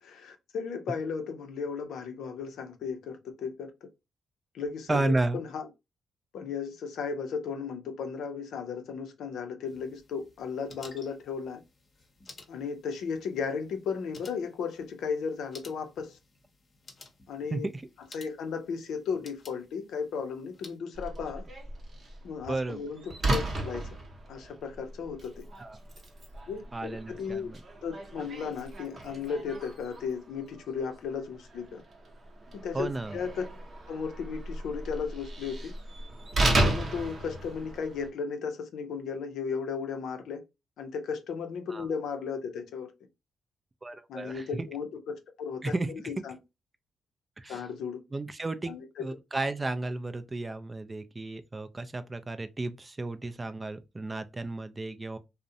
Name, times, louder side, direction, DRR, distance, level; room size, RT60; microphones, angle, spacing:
voice 1, 0.0-3.9 4.5-5.7 6.3-11.6 12.5-16.2 17.3-17.7 18.1-21.4 22.2-23.9 24.3-25.4 26.5-27.5 27.8-31.8 32.5-33.4 33.9-35.7 36.4-40.4 40.8-42.9 44.1-46.4 47.5-48.0 48.7-49.1, left 6 dB, 75° left, 0.4 m, -35 dB
voice 2, 4.9-5.4 17.5-17.8 22.5-22.8 25.6-25.8 26.7-27.6 32.7-33.2 41.7-41.9 43.8-44.5 45.6-46.1 47.4-47.6 48.1-48.7 49.0-55.2, right 2 dB, 25° right, 0.3 m, -33 dB
sound 1, 9.7-20.8, left 3 dB, 40° left, 0.7 m, -54 dB
Slam, 20.9-38.1, right 1 dB, 50° right, 0.8 m, -35 dB
2.4 x 2.0 x 2.6 m
supercardioid pair, 50°, 0 cm